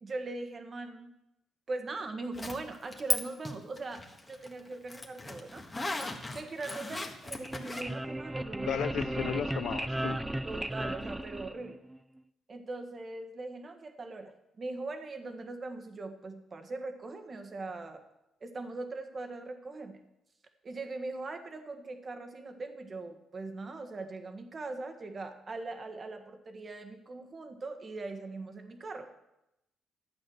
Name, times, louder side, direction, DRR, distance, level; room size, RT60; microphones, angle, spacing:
voice 1, 0.0-1.1 1.7-5.6 6.3-8.9 10.4-11.8 12.5-14.3 14.6-18.0 18.4-20.0 20.6-29.1, right 3 dB, 35° right, 6 dB, 1.7 m, -40 dB
Zipper (clothing), 2.3-3.2 3.5-7.8, left 2 dB, 20° left, 1.7 m, -36 dB
sound 1, 7.3-12.0, right 1 dB, 10° right, 0.5 m, -35 dB
voice 2, 8.7-10.2, left 9 dB, 75° left, 12 dB, 0.8 m, -34 dB
12.5 x 8.3 x 6.4 m, 0.90 s
cardioid pair, 90°, 0 cm